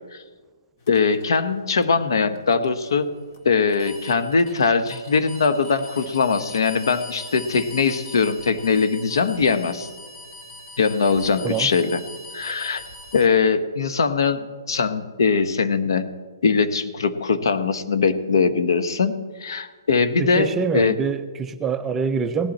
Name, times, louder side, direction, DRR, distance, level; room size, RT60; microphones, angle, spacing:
sound 1, 0.8-13.3, left 1 dB, 35° left, 1.9 m, -42 dB
voice 1, 0.9-3.1 3.4-9.9 10.8-12.0 12.3-12.8 13.1-16.1 16.4-21.0, left 5 dB, 70° left, 10 dB, 1.2 m, -21 dB
voice 2, 20.2-22.5, right 5 dB, 10° right, 9 dB, 0.4 m, -25 dB
17.5 x 11.5 x 4.3 m, 1.5 s
hypercardioid pair, 160°, 2 cm